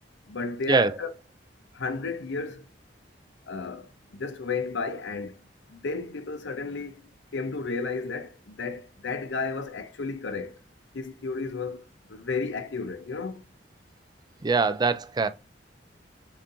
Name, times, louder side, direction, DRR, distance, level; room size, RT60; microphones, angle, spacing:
voice 1, 0.3-1.1 1.7-2.6 3.5-5.4 5.7-10.6 10.9-13.4, left 4 dB, 85° left, 0.6 m, -33 dB
voice 2, 14.4-15.3, right 4 dB, 25° right, 0.3 m, -23 dB
7.0 x 2.8 x 2.6 m
head